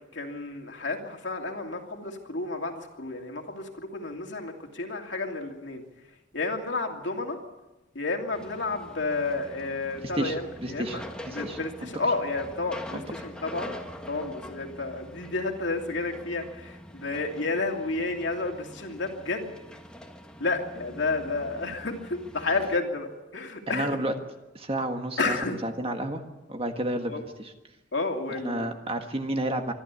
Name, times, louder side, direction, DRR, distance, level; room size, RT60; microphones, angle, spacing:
voice 1, 0.1-5.8 6.3-7.4 7.9-11.0 11.3-13.7 14.1-19.6 20.4-24.0 25.2-25.6 27.0-27.2 27.9-28.6, left 3 dB, 60° left, 2 dB, 2.8 m, -31 dB
sound 1, 8.3-22.8, left 1 dB, 5° left, 1.6 m, -44 dB
voice 2, 10.6-11.0 11.3-11.9 12.9-13.0 23.7-24.1 24.5-26.2 26.5-27.5 28.4-29.7, right 1 dB, 30° right, 5 dB, 1.6 m, -31 dB
25.0 x 12.5 x 8.4 m, 1.1 s
head